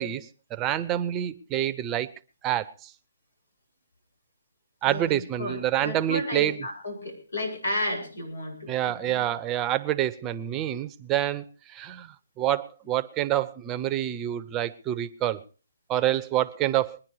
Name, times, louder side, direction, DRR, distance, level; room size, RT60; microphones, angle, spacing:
voice 1, 0.0-2.1 2.4-2.9 4.8-6.6 8.7-11.4 11.7-15.4 15.9-17.0, right 12 dB, 20° right, 13 dB, 0.7 m, -27 dB
voice 2, 4.8-9.3, left 1 dB, 90° left, 3 dB, 7.5 m, -33 dB
21.5 x 10.0 x 4.8 m, 0.37 s
hypercardioid pair, 145°, 0 cm